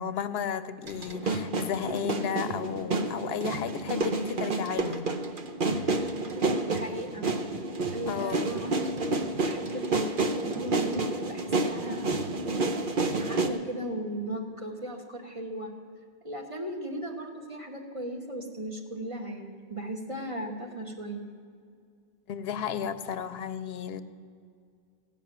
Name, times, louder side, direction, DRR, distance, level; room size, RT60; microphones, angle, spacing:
voice 1, 0.0-5.1 8.1-8.5 22.3-24.0, left 8 dB, 75° left, 12 dB, 0.8 m, -33 dB
sound 1, 0.9-13.5, right 2 dB, 55° right, 1.0 m, -30 dB
voice 2, 6.6-7.3 7.9-12.1 13.2-15.7 16.2-21.2, right 1 dB, 30° right, 1 dB, 1.5 m, -37 dB
15.5 x 5.8 x 9.1 m, 2.2 s
omnidirectional pair, 1.1 m